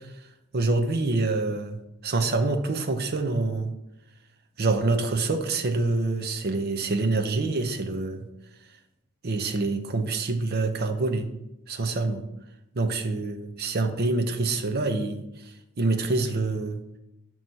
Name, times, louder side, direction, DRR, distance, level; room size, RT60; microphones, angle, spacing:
voice 1, 0.5-1.8 2.0-3.7 4.6-8.2 9.2-11.3 11.7-12.2 12.8-15.2 15.8-16.8, right 3 dB, 45° right, 7 dB, 0.6 m, -26 dB
7.6 x 3.1 x 5.4 m, 0.88 s
head